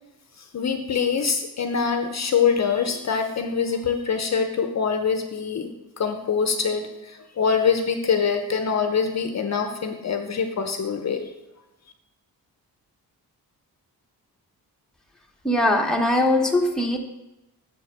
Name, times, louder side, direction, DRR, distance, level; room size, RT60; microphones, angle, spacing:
voice 1, 0.4-5.7 6.0-11.3, left 6 dB, 45° left, 6 dB, 0.7 m, -24 dB
voice 2, 15.4-17.0, left 1 dB, ahead, 0 dB, 1.0 m, -21 dB
7.2 x 4.9 x 6.6 m, 0.96 s
wide cardioid pair, 130°, 37 cm